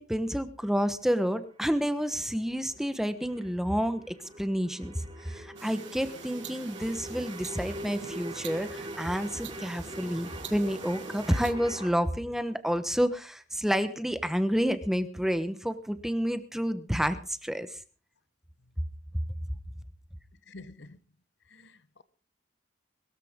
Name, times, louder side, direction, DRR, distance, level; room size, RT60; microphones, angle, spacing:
voice 1, 0.0-17.8, equal, ahead, 1.1 m, -29 dB
sound 1, 0.8-11.9, right 1 dB, 25° right, 3.9 m, -43 dB
sound 2, 5.6-11.5, right 7 dB, 80° right, 1.6 m, -46 dB
voice 2, 20.4-21.0 21.5-22.0, left 2 dB, 65° left, 1.0 m, -49 dB
22.0 x 13.5 x 3.7 m
head